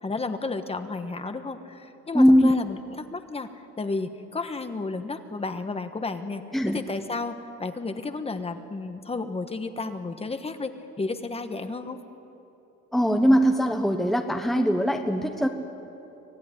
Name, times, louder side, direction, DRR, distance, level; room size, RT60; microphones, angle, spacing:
voice 1, 0.0-12.0, left 3 dB, 20° left, 8 dB, 1.3 m, -32 dB
voice 2, 2.1-2.5 6.5-6.8 12.9-15.5, equal, ahead, 4 dB, 1.1 m, -20 dB
25.5 x 16.5 x 9.9 m, 3.0 s
cardioid pair, 130°, 29 cm